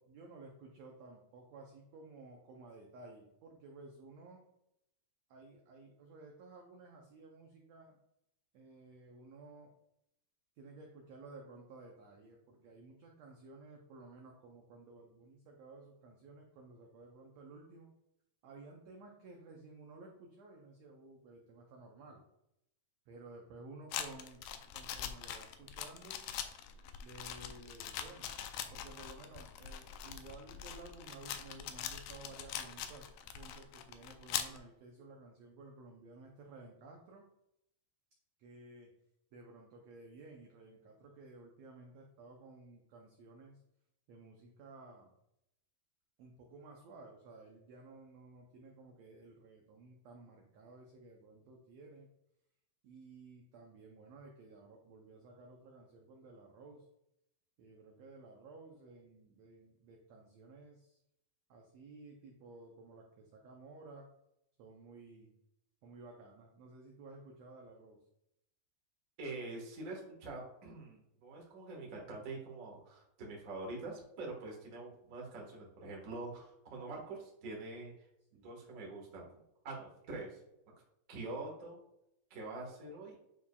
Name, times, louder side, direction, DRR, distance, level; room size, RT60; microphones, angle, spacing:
voice 1, 0.0-4.4 5.3-7.9 8.5-9.7 10.6-17.9 18.4-22.2 23.1-24.4 24.7-26.2 27.0-28.3 28.7-37.2 38.4-38.9 39.3-43.6 44.1-45.1 46.2-52.1 52.8-56.9 57.6-61.0 61.5-64.1 64.6-65.3 65.8-68.0 78.3-78.5, right 3 dB, 85° right, 1 dB, 1.5 m, -54 dB
sound 1, 23.9-34.6, left 9 dB, 85° left, 1.7 m, -43 dB
voice 2, 69.2-78.1 78.3-79.3 79.6-80.4 81.1-81.8 82.3-83.2, right 2 dB, 60° right, -1 dB, 0.8 m, -45 dB
8.8 x 4.7 x 2.3 m, 0.81 s
omnidirectional pair, 4.0 m